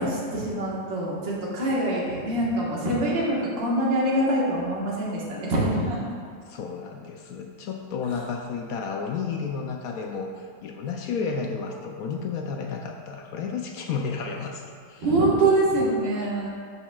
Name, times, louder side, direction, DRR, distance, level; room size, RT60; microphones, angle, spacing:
voice 1, 0.0-6.0 8.1-8.2 15.0-16.5, right 1 dB, 70° right, -5 dB, 2.2 m, -24 dB
voice 2, 6.5-14.6 14.9-15.1, left 5 dB, 85° left, 2 dB, 0.8 m, -32 dB
12.5 x 5.4 x 2.3 m, 2.1 s
omnidirectional pair, 2.1 m